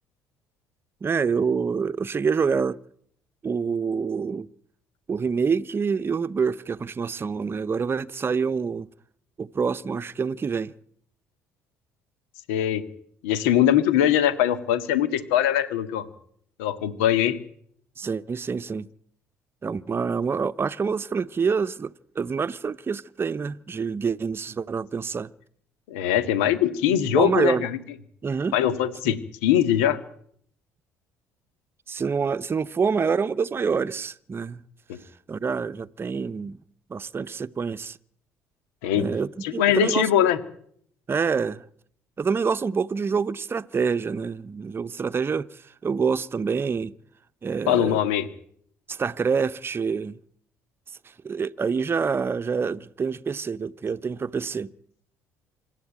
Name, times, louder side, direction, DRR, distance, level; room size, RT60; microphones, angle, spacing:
voice 1, 1.0-2.8 3.4-4.5 5.1-8.9 9.4-10.7 18.0-18.9 19.6-25.3 26.9-27.7 28.2-28.6 29.1-29.2 31.9-34.6 35.3-36.6 36.9-38.0 38.9-40.3 41.1-41.6 42.2-46.9 47.4-48.0 48.9-50.2 51.2-54.7, right 5 dB, 30° right, 0.8 m, -26 dB
voice 2, 12.5-12.8 13.2-16.1 16.6-17.4 25.9-27.7 28.5-29.2 29.4-30.0 34.9-35.0 38.8-39.1 39.4-40.4 47.7-48.3, left 11 dB, 75° left, 1.9 m, -22 dB
26.0 x 12.5 x 9.1 m
hypercardioid pair, 55°, 7 cm